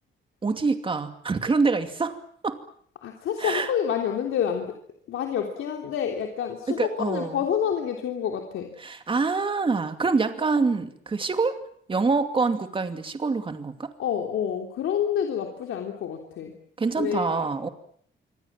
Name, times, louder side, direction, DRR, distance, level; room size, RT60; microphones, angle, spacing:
voice 1, 0.4-2.2 2.4-2.6 3.4-3.7 6.7-7.4 8.8-11.6 11.9-13.9 16.8-17.7, right 4 dB, 25° right, 8 dB, 2.6 m, -25 dB
voice 2, 3.0-4.8 5.1-8.7 14.0-16.5 17.0-17.4, left 8 dB, 85° left, 3 dB, 3.4 m, -28 dB
26.0 x 25.0 x 7.5 m, 0.63 s
cardioid pair, 135°, 20 cm